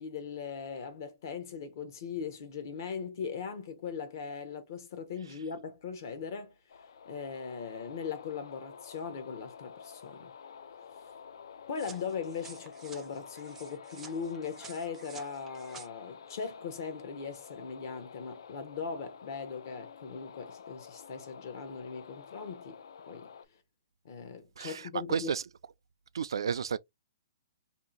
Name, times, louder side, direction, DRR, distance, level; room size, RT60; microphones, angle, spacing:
voice 1, 0.0-6.6 7.1-10.3 11.7-23.3 24.0-25.3, left 6 dB, 45° left, 0.7 m, -39 dB
sound 1, 6.7-23.5, left 6 dB, 70° left, 0.4 m, -50 dB
sound 2, 11.7-15.9, right 6 dB, 10° right, 0.4 m, -52 dB
voice 2, 24.6-25.4 26.1-26.8, right 7 dB, 85° right, 0.3 m, -32 dB
2.7 x 2.4 x 3.8 m
hypercardioid pair, 165°, 2 cm